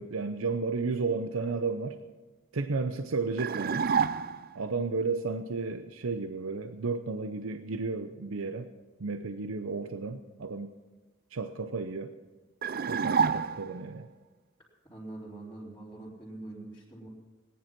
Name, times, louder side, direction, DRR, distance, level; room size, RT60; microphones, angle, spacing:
voice 1, 0.0-2.0 2.5-3.9 4.5-8.7 9.0-10.7 11.3-12.1 12.9-14.1, right 4 dB, 85° right, 9 dB, 0.7 m, -33 dB
sound 1, 3.4-4.6 12.6-13.9, right 6 dB, 45° right, 0.4 m, -28 dB
voice 2, 4.9-5.3 14.8-17.1, right 2 dB, 10° left, -11 dB, 4.1 m, -44 dB
19.0 x 10.5 x 6.0 m, 1.2 s
head